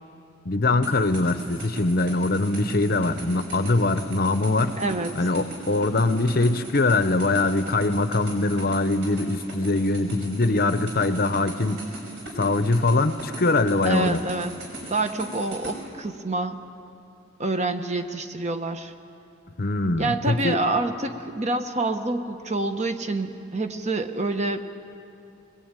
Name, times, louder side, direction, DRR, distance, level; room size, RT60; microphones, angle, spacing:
voice 1, 0.4-4.8 5.2-11.8 12.4-14.2 19.6-20.6, left 2 dB, 45° left, 11 dB, 0.8 m, -22 dB
sound 1, 0.8-15.7, right 1 dB, 60° right, 5.9 m, -39 dB
voice 2, 4.8-5.1 13.8-14.5 14.9-16.6 17.4-18.9 20.0-24.6, right 2 dB, 35° right, 7 dB, 1.1 m, -27 dB
21.0 x 21.0 x 9.0 m, 2.6 s
head